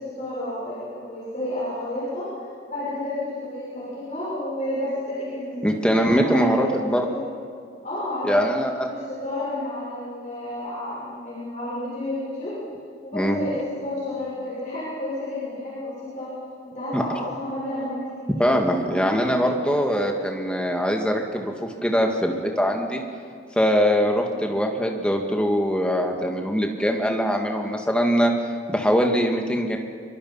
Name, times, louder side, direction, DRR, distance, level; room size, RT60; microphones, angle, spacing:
voice 1, 0.0-7.2 7.8-8.6 8.9-12.5 13.0-16.3 16.6-18.5, left 1 dB, 40° left, -8 dB, 6.4 m, -31 dB
voice 2, 5.6-7.1 8.2-8.9 13.1-13.4 16.9-17.0 18.4-23.0 23.6-28.3 28.7-29.8, equal, 5° left, 2 dB, 1.8 m, -22 dB
24.0 x 23.5 x 5.6 m, 2.2 s
head